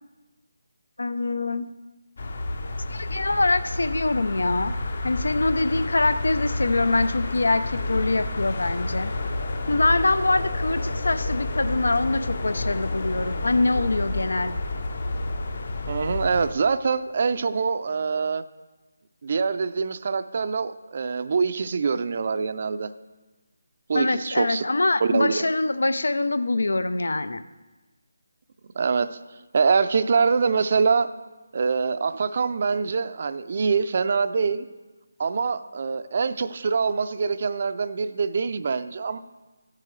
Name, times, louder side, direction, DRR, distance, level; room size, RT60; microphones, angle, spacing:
voice 1, 1.0-1.7 2.9-4.7 5.0-9.1 9.7-14.5 23.9-27.4, left 2 dB, 85° left, 13 dB, 0.4 m, -24 dB
sound 1, 2.2-16.5, left 2 dB, 45° left, 0.7 m, -30 dB
voice 2, 15.9-18.4 19.2-22.9 23.9-24.6 25.0-25.4 28.8-29.2 29.5-31.1 31.5-34.7 35.2-39.2, right 5 dB, 40° right, 12 dB, 0.4 m, -24 dB
14.0 x 7.6 x 3.1 m, 1.2 s
figure-of-eight pair, 170°, 0 cm